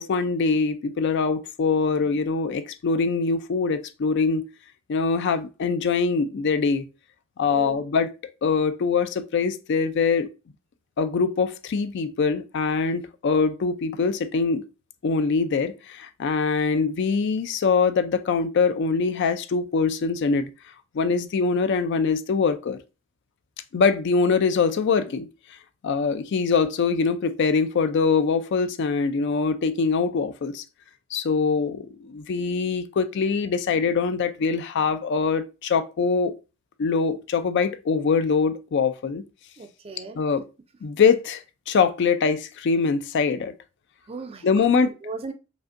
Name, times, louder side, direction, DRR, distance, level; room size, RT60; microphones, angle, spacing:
voice 1, 0.0-4.5 4.9-6.9 7.4-8.1 8.4-10.3 11.0-14.6 15.0-20.5 20.9-22.8 23.7-25.3 25.8-30.6 31.1-36.3 36.8-39.2 40.2-40.4 40.8-43.5 44.4-44.9, left 5 dB, 55° left, 0.3 m, -23 dB
voice 2, 7.5-7.9 39.6-40.2 44.1-45.3, right 4 dB, 25° right, 0.4 m, -37 dB
5.1 x 2.6 x 2.5 m
head